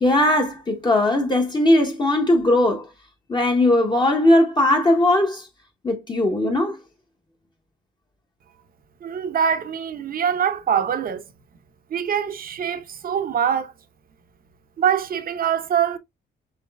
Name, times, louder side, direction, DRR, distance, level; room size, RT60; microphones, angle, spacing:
voice 1, 0.0-2.9 3.3-5.5 5.8-6.8, left 1 dB, 20° left, 0.8 m, -19 dB
voice 2, 9.0-11.2 11.9-13.7 14.8-16.0, right 8 dB, 45° right, 0.7 m, -23 dB
5.8 x 3.1 x 2.2 m
cardioid pair, 90°, 20 cm